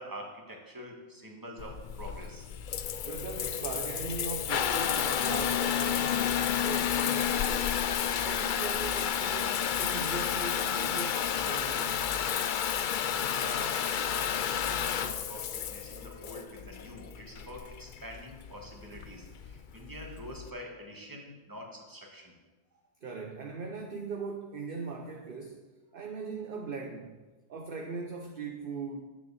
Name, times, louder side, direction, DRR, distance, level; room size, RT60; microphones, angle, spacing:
voice 1, 0.0-2.5 12.8-22.4, equal, 15° right, 0 dB, 1.7 m, -45 dB
Water tap faucet / Bathtub (filling or washing) / Trickle dribble, 1.6-20.5, left 8 dB, 80° left, 0.4 m, -31 dB
voice 2, 3.0-7.8 8.2-12.0 23.0-25.7 25.9-27.2 27.5-29.0, right 4 dB, 45° right, 3 dB, 0.9 m, -39 dB
9.5 x 7.1 x 7.0 m, 1.2 s
omnidirectional pair, 1.5 m